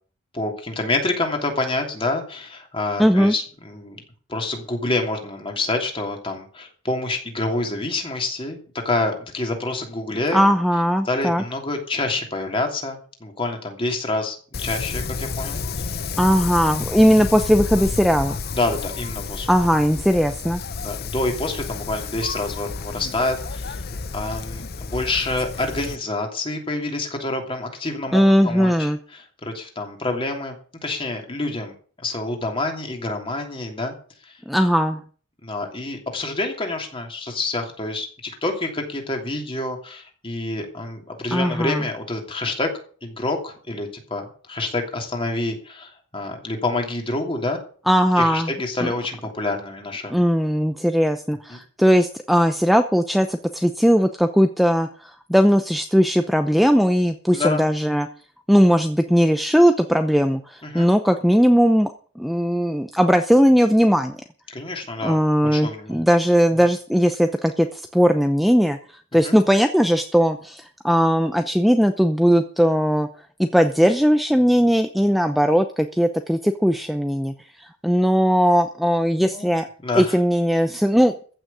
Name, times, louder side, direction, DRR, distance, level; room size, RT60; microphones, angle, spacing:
voice 1, 0.3-4.0 4.3-8.6 8.8-10.4 11.0-14.4 14.6-15.9 18.5-19.5 20.8-23.8 24.1-30.6 30.8-31.7 32.0-33.9 34.2-34.4 35.4-42.7 43.0-47.6 48.2-50.2 51.5-51.6 57.3-57.6 60.6-60.9 64.5-65.2 65.4-66.0 69.2-69.4 79.2-79.5 79.8-80.2, left 2 dB, 25° left, 3 dB, 3.0 m, -27 dB
voice 2, 3.0-3.3 10.3-11.4 16.2-18.4 19.5-20.6 28.1-29.0 34.5-35.0 41.3-41.8 47.9-48.5 48.8-48.9 50.1-58.1 58.5-64.2 65.0-68.8 69.1-73.1 73.4-79.7 80.0-81.3, equal, ahead, 7 dB, 0.7 m, -18 dB
Wind, 14.5-26.0, left 4 dB, 50° left, 0.7 m, -31 dB
15.0 x 6.4 x 8.4 m, 0.43 s
head